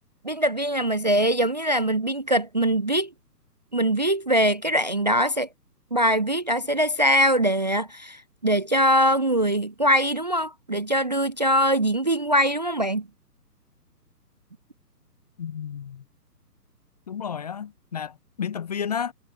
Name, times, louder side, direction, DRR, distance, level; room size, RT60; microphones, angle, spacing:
voice 1, 0.2-3.1 3.7-5.5 5.9-13.1, equal, 30° right, 0.4 m, -22 dB
voice 2, 15.4-16.0 17.1-19.1, left 7 dB, 25° left, 0.7 m, -32 dB
figure-of-eight pair, 135°, 49 cm